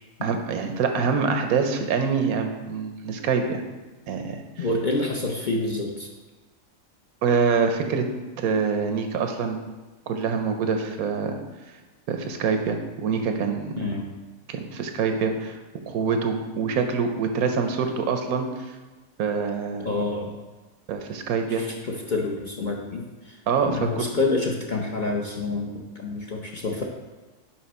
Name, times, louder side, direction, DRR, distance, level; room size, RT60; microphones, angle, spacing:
voice 1, 0.2-3.6 4.1-4.7 7.2-8.0 8.4-9.6 10.1-11.4 12.1-13.7 14.5-15.6 15.9-18.7 19.2-19.9 20.9-21.6 23.5-24.1, right 5 dB, 90° right, 5 dB, 1.2 m, -25 dB
voice 2, 4.6-6.1 13.8-14.1 19.8-20.3 21.6-23.4 23.6-26.8, left 2 dB, 50° left, -1 dB, 0.6 m, -28 dB
5.9 x 5.1 x 4.2 m, 1.2 s
omnidirectional pair, 1.5 m